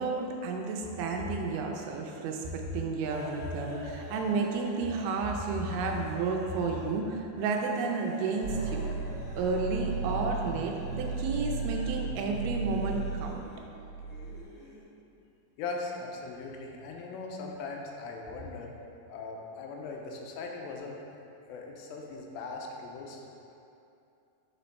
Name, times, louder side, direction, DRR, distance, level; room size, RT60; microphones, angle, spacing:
voice 1, 0.0-8.9 9.4-13.4, right 4 dB, 90° right, 2 dB, 2.5 m, -31 dB
sound 1, 3.0-6.9 7.4-12.0 12.5-14.8, left 1 dB, 55° left, 2.1 m, -47 dB
sound 2, 8.4-14.4, right 4 dB, 55° right, 2.1 m, -35 dB
voice 2, 15.6-18.7 19.1-21.0 21.5-23.2, left 3 dB, 85° left, 0 dB, 2.4 m, -39 dB
6.5 x 4.4 x 4.1 m, 2.7 s
omnidirectional pair, 4.2 m